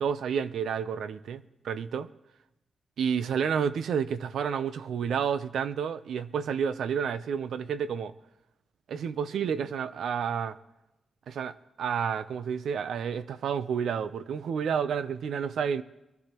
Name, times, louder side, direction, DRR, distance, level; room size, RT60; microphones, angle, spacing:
voice 1, 0.0-2.1 3.0-8.1 8.9-10.6 11.3-15.8, right 7 dB, 90° right, 0.6 m, -30 dB
23.0 x 13.0 x 3.0 m
wide cardioid pair, 150°, 0 cm